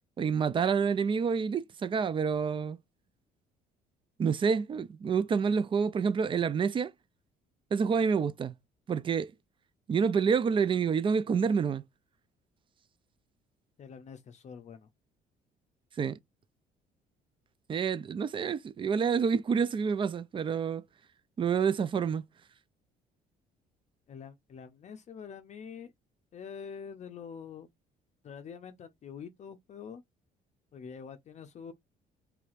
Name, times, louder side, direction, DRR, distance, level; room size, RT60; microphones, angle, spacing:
voice 1, 0.2-2.8 4.2-6.9 7.7-8.5 8.9-9.3 9.9-11.8 16.0-16.2 17.7-20.8 21.4-22.2, right 6 dB, 30° right, 0.4 m, -28 dB
voice 2, 13.8-14.9 24.1-25.9 26.3-27.7 28.2-30.0 30.7-31.7, left 6 dB, 45° left, 0.6 m, -45 dB
4.8 x 3.4 x 2.4 m
cardioid pair, 110°, 17 cm